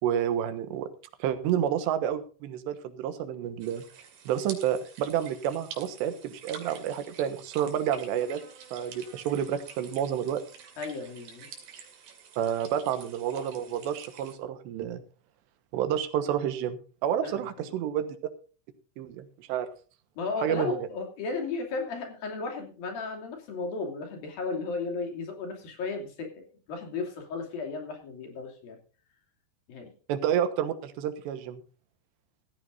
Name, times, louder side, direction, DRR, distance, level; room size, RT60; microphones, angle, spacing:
voice 1, 0.0-0.9 1.2-3.8 4.3-8.4 8.7-10.4 12.4-15.0 15.7-18.2 19.0-19.7 20.4-20.9 30.1-31.6, right 9 dB, 85° right, 10 dB, 3.4 m, -29 dB
sound 1, 3.6-14.4, right 7 dB, 70° right, 4.4 m, -48 dB
voice 2, 10.8-11.5 17.2-17.7 20.2-28.8 29.7-29.9, left 4 dB, 60° left, 2 dB, 4.5 m, -35 dB
17.0 x 14.0 x 2.6 m, 0.37 s
omnidirectional pair, 4.9 m